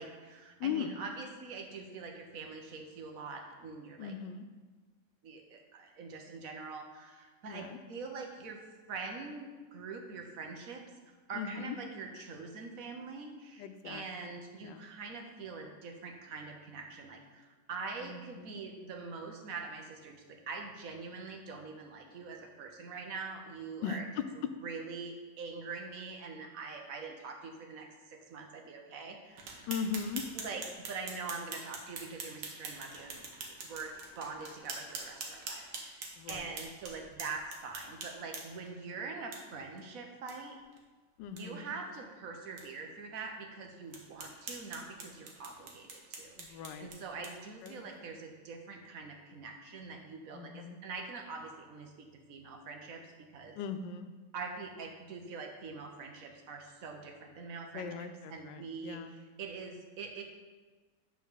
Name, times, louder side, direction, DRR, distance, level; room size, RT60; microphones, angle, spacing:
voice 1, 0.0-4.1 5.2-8.6 8.9-24.1 24.6-29.7 30.3-40.6 41.4-53.6 54.3-60.2, right 4 dB, 55° right, 3 dB, 1.2 m, -44 dB
voice 2, 0.6-1.0 4.0-4.4 7.5-7.8 11.3-11.8 13.6-14.9 18.0-18.6 23.8-24.2 29.7-30.2 36.2-36.5 41.2-41.7 46.4-46.9 47.2-47.3 47.6-47.9 50.3-50.8 53.5-54.1 57.7-59.1, left 7 dB, 90° left, 9 dB, 1.3 m, -39 dB
sound 1, 29.4-38.7 39.3-39.4 39.8-39.9 40.3-40.4 40.7-40.8 41.2-41.4 41.9-42.0 42.6-42.7 43.2-43.3 43.9-47.9, right 4 dB, 90° right, 1.7 m, -45 dB
8.7 x 3.8 x 5.6 m, 1.3 s
omnidirectional pair, 1.9 m